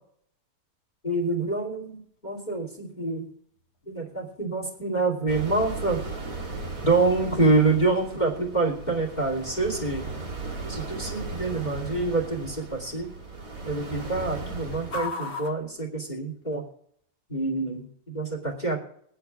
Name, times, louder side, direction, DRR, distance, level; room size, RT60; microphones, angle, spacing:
voice 1, 1.0-3.3 3.9-6.0 6.8-10.1 10.7-13.1 13.6-16.6 17.3-18.8, right 3 dB, 15° left, 0 dB, 2.1 m, -26 dB
sound 1, 1.9-16.7, left 3 dB, 50° left, 1.3 m, -46 dB
sound 2, 5.3-15.1, right 3 dB, 30° right, 1.9 m, -37 dB
23.5 x 10.5 x 2.4 m, 0.69 s
omnidirectional pair, 4.4 m